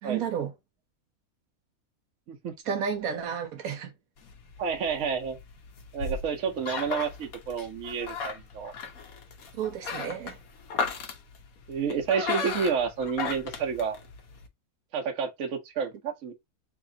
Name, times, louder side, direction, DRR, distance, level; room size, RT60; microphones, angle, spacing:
voice 1, 0.0-0.5 2.6-3.9 9.5-10.4, right 7 dB, 85° right, 1.4 m, -31 dB
sound 1, 4.2-14.5, left 5 dB, 80° left, 1.3 m, -36 dB
voice 2, 4.6-5.4 5.9-8.7 11.7-14.0 14.9-16.3, right 6 dB, 70° right, 1.2 m, -30 dB
3.4 x 3.0 x 3.7 m
omnidirectional pair, 1.5 m